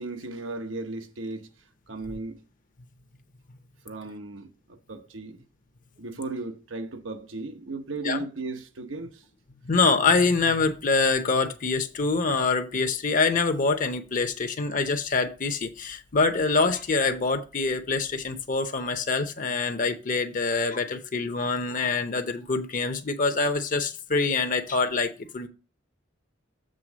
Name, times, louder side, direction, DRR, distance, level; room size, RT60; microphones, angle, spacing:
voice 1, 0.0-1.5 1.9-2.4 3.8-5.4 6.0-9.2, right 3 dB, 85° right, 0.9 m, -36 dB
voice 2, 9.6-25.5, left 4 dB, 45° left, 0.7 m, -25 dB
7.6 x 3.5 x 6.0 m
head